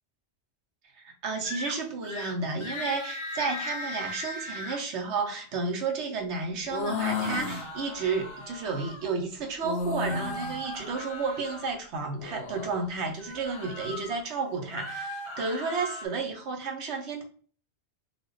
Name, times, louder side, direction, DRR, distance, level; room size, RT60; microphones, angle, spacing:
voice 1, 1.0-17.2, right 4 dB, 75° right, 3 dB, 1.0 m, -32 dB
sound 1, 1.4-1.8 2.0-2.3 2.6-4.8 6.9-9.0 10.0-11.7 13.2-14.2 14.6-16.1, left 1 dB, 35° left, 0.5 m, -38 dB
sound 2, 6.6-7.7 9.6-10.6 12.1-12.7, left 4 dB, 80° left, 1.1 m, -32 dB
4.0 x 2.3 x 3.1 m, 0.43 s
omnidirectional pair, 1.2 m